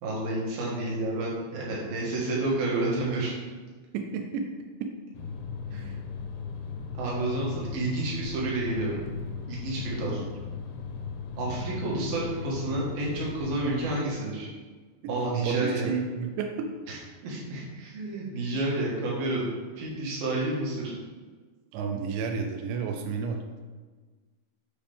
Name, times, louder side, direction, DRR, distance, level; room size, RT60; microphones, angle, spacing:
voice 1, 0.0-3.3 5.7-5.9 6.9-9.0 9.5-10.2 11.4-14.5 15.1-15.9 17.2-19.5 19.8-20.9, right 2 dB, 60° right, -5 dB, 3.0 m, -30 dB
voice 2, 3.9-4.5 4.8-4.9 5.7-6.0 10.1-10.3 15.2-16.7 21.7-23.4, right 6 dB, 85° right, 3 dB, 2.9 m, -31 dB
sound 1, 5.1-14.0, left 5 dB, 80° left, 2.4 m, -37 dB
8.6 x 4.8 x 3.4 m, 1.4 s
omnidirectional pair, 5.1 m